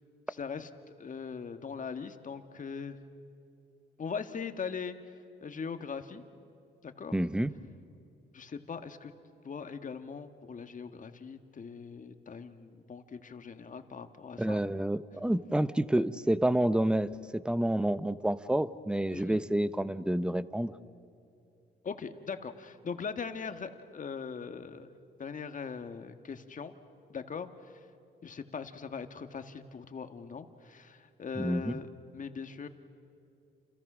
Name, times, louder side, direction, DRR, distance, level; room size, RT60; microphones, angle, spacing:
voice 1, 0.3-0.7 1.0-3.0 4.0-5.0 5.4-6.2 6.8-7.1 8.3-9.1 9.4-14.6 19.1-19.4 21.8-24.9 25.2-26.7 27.1-27.8 28.2-31.9 32.1-32.7, left 6 dB, 40° left, 8 dB, 1.7 m, -40 dB
voice 2, 7.1-7.5 14.4-20.7 31.4-31.8, right 1 dB, 5° right, 15 dB, 0.8 m, -29 dB
29.5 x 28.5 x 6.3 m, 2.6 s
cardioid pair, 90°, 20 cm